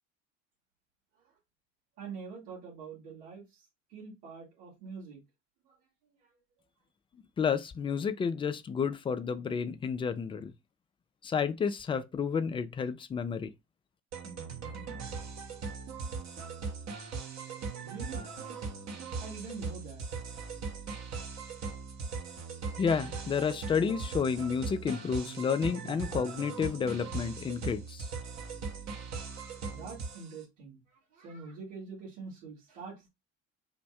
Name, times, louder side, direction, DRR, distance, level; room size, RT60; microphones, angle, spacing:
voice 1, 2.0-5.2 5.7-5.8 6.0-6.3 17.2-17.3 17.6-18.7 19.2-20.1 29.2-33.1, right 5 dB, 70° right, 2.7 m, -46 dB
voice 2, 7.4-10.5 11.2-13.5 22.8-28.1, left 6 dB, 15° left, 0.3 m, -31 dB
sound 1, 14.1-30.4, right 4 dB, 45° right, 1.0 m, -39 dB
4.2 x 2.6 x 3.1 m
figure-of-eight pair, 60°, 39 cm